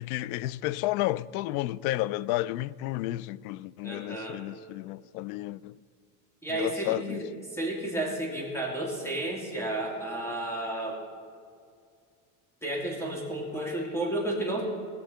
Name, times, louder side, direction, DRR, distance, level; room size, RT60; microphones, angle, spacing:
voice 1, 0.0-5.8 6.5-7.2, left 16 dB, 75° left, 0.5 m, -31 dB
voice 2, 3.8-4.4 6.4-7.3 7.5-11.0 12.6-14.6, right 1 dB, 5° left, 2.8 m, -32 dB
19.5 x 7.0 x 5.7 m
supercardioid pair, 135°, 43 cm